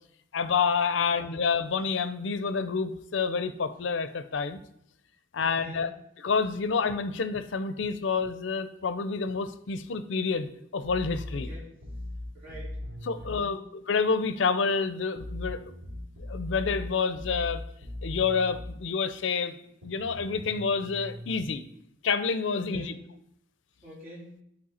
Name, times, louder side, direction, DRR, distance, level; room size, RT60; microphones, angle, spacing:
voice 1, 0.3-4.6 5.3-5.9 6.2-11.5 13.1-15.6 16.3-17.6 18.0-19.5 19.8-21.6 22.0-22.9, left 5 dB, 65° left, 11 dB, 0.5 m, -28 dB
voice 2, 1.0-1.3 5.4-5.9 11.3-11.7 12.3-12.8 13.1-13.6 22.5-23.1 23.8-24.4, equal, 45° right, -6 dB, 3.4 m, -46 dB
sound 1, 10.8-13.4 15.1-18.8 19.8-21.5, left 1 dB, 80° right, 3.3 m, -39 dB
11.0 x 4.4 x 4.3 m, 0.75 s
head